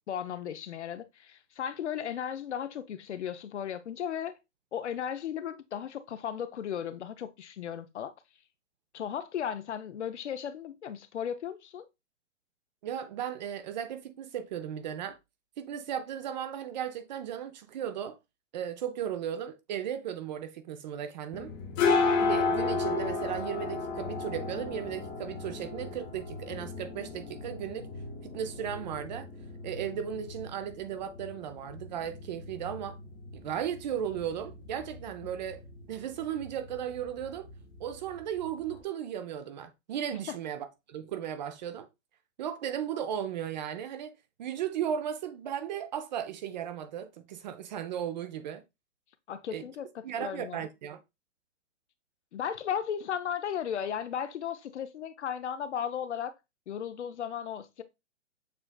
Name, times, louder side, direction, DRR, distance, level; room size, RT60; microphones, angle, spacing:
voice 1, 0.1-4.4 4.7-8.1 8.9-11.9 40.3-40.4 49.3-50.7 52.3-56.3 56.7-57.8, left 8 dB, 65° left, 0.7 m, -35 dB
voice 2, 12.8-15.2 15.6-18.2 18.5-21.5 22.2-27.9 28.2-29.3 29.6-33.0 33.3-35.6 35.9-37.5 37.8-41.9 42.4-44.1 44.4-48.6 49.5-49.6 50.0-51.0, right 9 dB, 35° right, 0.6 m, -36 dB
sound 1, 21.3-38.8, left 4 dB, 25° left, 0.9 m, -34 dB
6.7 x 3.3 x 2.2 m
figure-of-eight pair, 125°, 38 cm